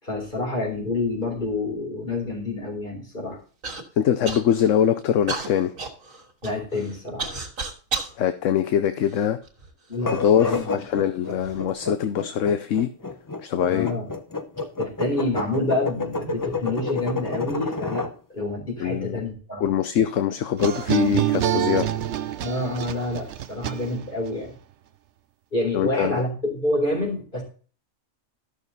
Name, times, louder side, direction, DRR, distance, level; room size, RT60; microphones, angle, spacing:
voice 1, 0.0-3.4 6.4-7.3 9.9-10.7 13.7-14.1 14.8-19.7 22.4-24.6 25.5-27.4, left 2 dB, 40° left, -1 dB, 4.1 m, -28 dB
Human voice / Cough, 3.6-3.8 4.2-4.7 5.3-8.1 8.8-9.7 10.4-10.5 11.2-11.6, right 4 dB, 80° right, 2.3 m, -32 dB
voice 2, 4.0-5.7 8.2-9.4 10.0-12.9 13.4-13.9 18.8-19.3 19.6-21.9 25.7-26.2, left 9 dB, 70° left, 10 dB, 1.0 m, -23 dB
sound 1, 9.9-18.1, left 3 dB, 20° left, 0.5 m, -30 dB
sound 2, 20.6-24.3, right 11 dB, 65° right, 0.9 m, -26 dB
13.0 x 6.5 x 4.1 m, 0.39 s
omnidirectional pair, 1.4 m